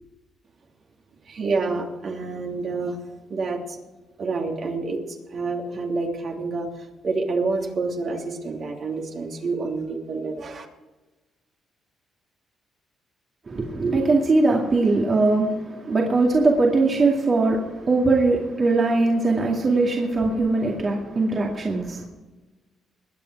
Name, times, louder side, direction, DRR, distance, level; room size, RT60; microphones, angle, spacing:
voice 1, 1.2-3.0 3.3-3.8 4.2-10.6, right 3 dB, 55° right, 2.9 m, -28 dB
voice 2, 13.5-22.1, right 3 dB, 40° right, 2.3 m, -21 dB
21.5 x 8.7 x 4.8 m
cardioid pair, 90°, 0 cm